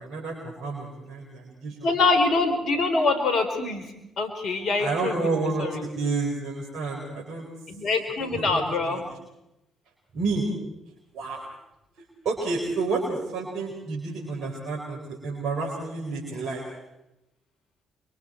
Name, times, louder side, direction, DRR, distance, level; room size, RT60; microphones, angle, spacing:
voice 1, 0.0-1.9 4.8-7.5 8.2-9.0 10.1-10.4 11.1-11.4 12.2-16.6, right 3 dB, 65° right, -3 dB, 4.6 m, -30 dB
voice 2, 1.8-5.3 5.6-5.8 7.7-9.0, left 3 dB, 60° left, 7 dB, 3.9 m, -25 dB
26.5 x 23.0 x 4.5 m, 0.91 s
hypercardioid pair, 45°, 0 cm